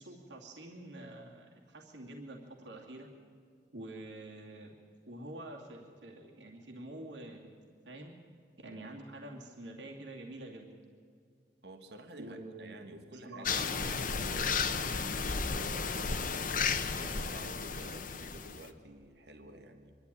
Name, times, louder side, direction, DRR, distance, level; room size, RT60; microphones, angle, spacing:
voice 1, 0.0-3.1 3.7-4.7 5.1-7.5 7.9-8.1 8.6-10.7 12.2-12.8 13.1-14.3, right 1 dB, 85° right, 0 dB, 2.5 m, -47 dB
voice 2, 11.6-16.4 16.9-20.0, right 1 dB, 65° right, 6 dB, 1.6 m, -51 dB
sound 1, 13.4-18.6, left 5 dB, 50° left, 1.1 m, -33 dB
24.5 x 12.0 x 10.0 m, 2.2 s
head